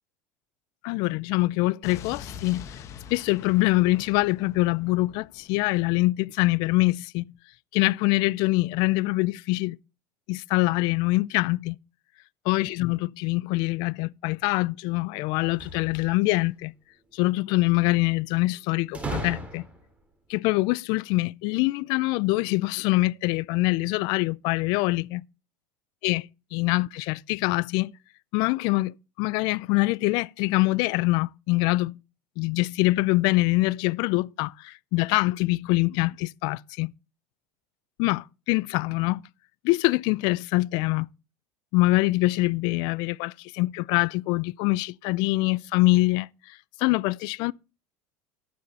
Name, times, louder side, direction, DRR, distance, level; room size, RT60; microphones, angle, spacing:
voice 1, 0.8-2.6 3.1-7.2 7.7-9.8 10.3-11.8 12.5-16.7 17.1-19.6 20.3-25.2 26.0-27.9 28.3-32.0 32.4-36.9 38.0-39.2 39.6-41.1 41.7-46.3 46.8-47.5, left 21 dB, 60° left, 0.4 m, -24 dB
Explosion, 1.8-5.9, left 8 dB, 40° left, 1.1 m, -44 dB
Puerta cerrada y abierta, 15.4-16.5 18.9-20.0, right 2 dB, 15° right, 3.7 m, -36 dB
12.0 x 8.6 x 4.2 m
supercardioid pair, 140°, 8 cm